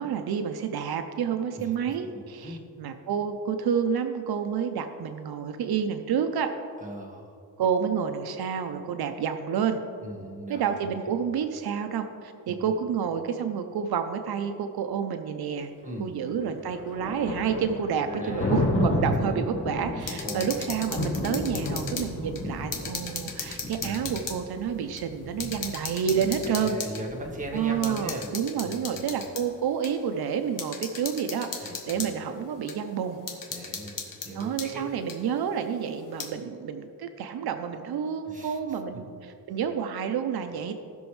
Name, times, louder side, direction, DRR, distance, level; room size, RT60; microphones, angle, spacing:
voice 1, 0.0-6.5 7.6-9.8 10.5-15.7 16.0-26.8 27.5-33.2 34.3-40.7, right 7 dB, 80° right, 7 dB, 0.7 m, -29 dB
voice 2, 1.6-2.7 6.8-7.4 10.0-11.0 12.5-12.6 15.8-16.2 18.1-18.6 19.3-19.4 20.2-20.5 26.4-28.4 28.6-29.1 31.6-31.9 33.5-34.9 38.3-38.6 38.9-39.1, right 1 dB, 20° right, -1 dB, 1.5 m, -39 dB
Thunder, 16.2-28.0, left 1 dB, 30° left, 2.7 m, -32 dB
sound 1, 20.0-22.1 22.4-24.4 25.0-25.1 25.4-27.0 27.8-29.5 29.8-29.9 30.6-32.1 32.7-32.8 33.3-34.7 35.1-35.2 36.0-36.3, left 5 dB, 60° left, 1.4 m, -37 dB
18.0 x 6.2 x 3.2 m, 2.4 s
wide cardioid pair, 150°, 37 cm